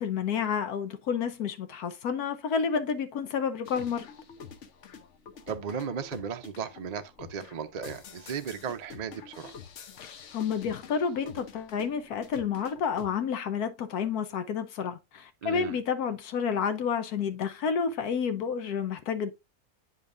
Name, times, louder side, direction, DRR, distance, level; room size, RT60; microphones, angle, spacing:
voice 1, 0.0-4.1 10.0-19.3, left 6 dB, 80° left, 1.3 m, -30 dB
sound 1, 3.6-13.1, left 6 dB, 55° left, 1.1 m, -47 dB
voice 2, 5.5-9.5 15.4-15.8, right 7 dB, 70° right, 0.4 m, -36 dB
8.6 x 5.3 x 2.5 m
omnidirectional pair, 1.6 m